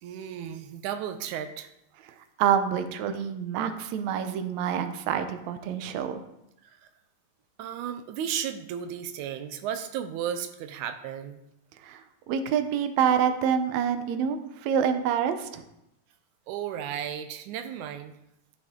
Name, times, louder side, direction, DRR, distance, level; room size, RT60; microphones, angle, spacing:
voice 1, 0.0-1.7 6.6-6.8 7.6-11.4 16.5-18.1, right 9 dB, 90° right, 8 dB, 2.1 m, -34 dB
voice 2, 2.4-6.2 11.8-15.6, right 8 dB, 75° right, 8 dB, 2.0 m, -27 dB
12.0 x 7.6 x 3.7 m, 0.84 s
omnidirectional pair, 3.5 m